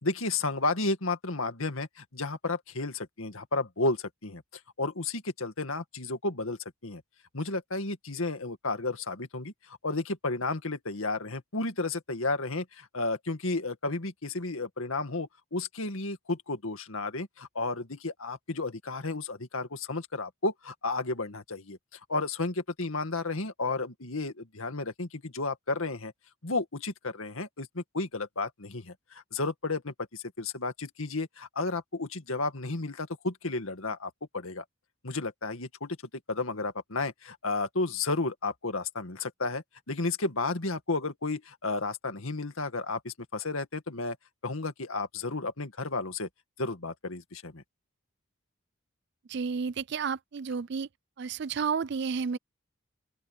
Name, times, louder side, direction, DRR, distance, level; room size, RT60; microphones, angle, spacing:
voice 1, 0.0-4.4 4.8-7.0 7.3-21.8 22.1-26.1 26.4-34.6 35.0-36.0 36.3-44.2 44.4-46.3 46.6-47.6, left 3 dB, 80° left, 2.1 m, -32 dB
voice 2, 49.3-50.9 51.2-52.4, right 5 dB, 55° right, 0.4 m, -31 dB
open air
head